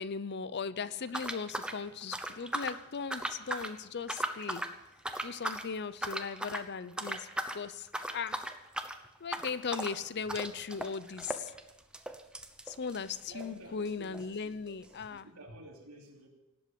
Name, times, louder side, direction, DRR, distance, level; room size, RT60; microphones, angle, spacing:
voice 1, 0.0-4.6 5.2-8.5 9.2-11.5 12.7-15.3, left 5 dB, 50° left, 16 dB, 0.6 m, -38 dB
sound 1, 1.1-2.8 3.1-3.7 4.0-4.7 5.0-5.7 6.0-6.7 7.0-7.6 7.9-13.6 13.8-13.9 14.1-14.2 14.9-15.0, right 1 dB, 5° right, 0.9 m, -38 dB
voice 2, 13.3-16.3, right 1 dB, 90° right, 0 dB, 3.1 m, -51 dB
18.5 x 8.1 x 7.7 m, 0.97 s
head